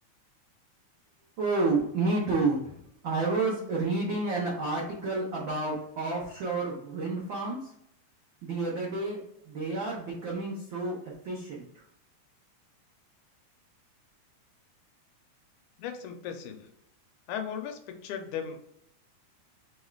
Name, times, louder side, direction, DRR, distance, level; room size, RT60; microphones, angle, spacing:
voice 1, 1.4-2.8 3.0-7.7 8.4-9.2 9.5-11.0 11.2-11.8, right 3 dB, 80° right, -4 dB, 1.0 m, -30 dB
voice 2, 15.8-16.7 17.3-18.7, left 8 dB, 85° left, 6 dB, 2.1 m, -37 dB
6.0 x 2.4 x 3.2 m, 0.74 s
omnidirectional pair, 3.4 m